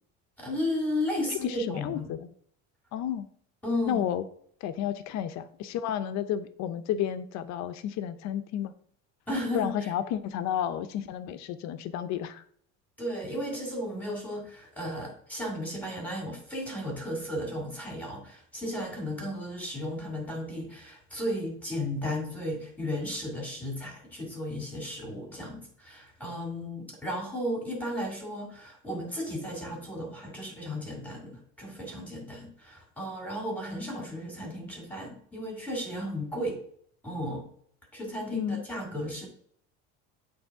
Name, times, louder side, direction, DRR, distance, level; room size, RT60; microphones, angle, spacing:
voice 1, 0.4-2.1 3.6-4.0 9.3-9.9 13.0-36.6 37.0-37.5 37.9-39.3, left 1 dB, 5° left, -1 dB, 2.3 m, -34 dB
voice 2, 1.4-2.3 2.9-3.3 3.9-4.2 4.6-8.7 9.5-12.4 38.3-38.6, left 10 dB, 60° left, 11 dB, 0.7 m, -32 dB
8.0 x 3.4 x 4.7 m, 0.62 s
cardioid pair, 135°, 32 cm